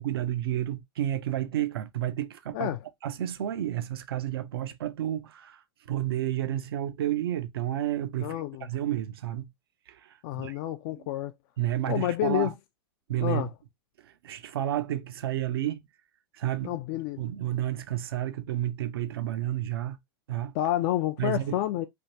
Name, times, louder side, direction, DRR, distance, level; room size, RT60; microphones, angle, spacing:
voice 1, 0.0-2.8 3.0-5.6 5.9-9.5 9.9-10.5 10.9-11.0 11.6-12.5 13.1-13.5 14.0-15.8 16.3-16.8 17.2-20.0 20.3-20.5 21.2-21.6, right 12 dB, 75° right, 0.5 m, -31 dB
voice 2, 8.2-8.7 10.2-11.3 11.9-12.5 13.2-13.5 16.6-17.2 20.5-21.9, left 14 dB, 50° left, 0.4 m, -29 dB
3.4 x 2.5 x 2.7 m
hypercardioid pair, 110°, 13 cm